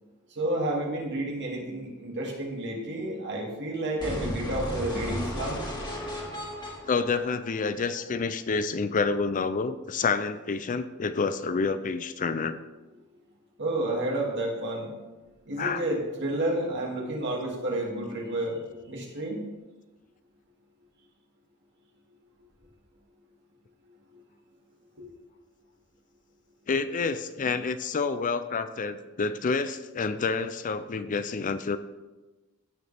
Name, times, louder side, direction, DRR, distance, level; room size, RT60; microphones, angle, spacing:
voice 1, 0.4-5.6 13.6-14.9 15.5-18.6 18.9-19.4 25.0-25.1, right 1 dB, 55° right, -1 dB, 2.4 m, -30 dB
sound 1, 4.0-8.0, equal, 20° left, 2.4 m, -35 dB
voice 2, 6.9-12.6 15.6-15.8 26.7-31.8, left 4 dB, 35° left, 12 dB, 0.4 m, -28 dB
16.0 x 6.5 x 3.5 m, 1.1 s
head